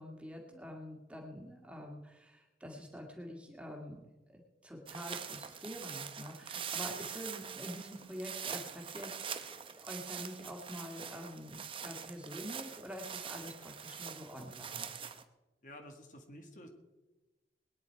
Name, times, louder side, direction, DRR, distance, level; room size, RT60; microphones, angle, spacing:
voice 1, 0.0-4.0 4.3-9.1 9.5-14.9, equal, 5° right, 0 dB, 2.1 m, -46 dB
sound 1, 4.9-15.2, right 7 dB, 30° right, 0.8 m, -44 dB
voice 2, 15.6-16.7, equal, 45° left, 3 dB, 1.8 m, -51 dB
21.5 x 9.8 x 4.6 m, 1.1 s
head